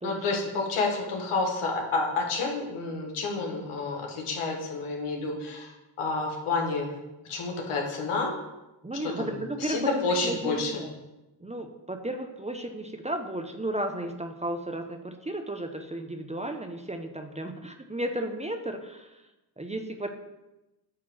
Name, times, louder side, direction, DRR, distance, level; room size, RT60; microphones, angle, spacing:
voice 1, 0.0-6.9 7.3-8.3 9.0-9.3 9.6-10.8, left 3 dB, 80° left, 1 dB, 1.6 m, -29 dB
voice 2, 8.8-10.9 11.4-19.2 19.6-20.1, right 1 dB, 15° right, 5 dB, 0.7 m, -34 dB
8.5 x 3.0 x 6.1 m, 1.0 s
cardioid pair, 60°, 50 cm